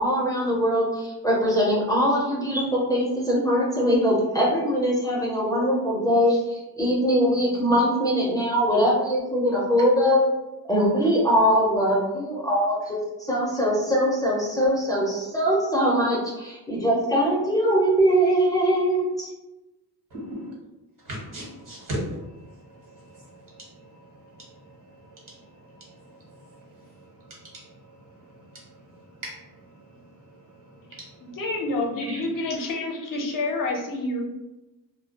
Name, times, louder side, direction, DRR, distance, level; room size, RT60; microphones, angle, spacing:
voice 1, 0.0-10.2 10.7-19.3, equal, 10° left, -5 dB, 0.5 m, -22 dB
voice 2, 20.1-20.5 21.0-31.4 32.0-32.2 32.5-32.6, right 1 dB, 55° right, -4 dB, 1.1 m, -41 dB
voice 3, 31.2-34.2, left 2 dB, 55° left, 0 dB, 0.6 m, -28 dB
2.3 x 2.1 x 2.7 m, 1.0 s
cardioid pair, 120°, 38 cm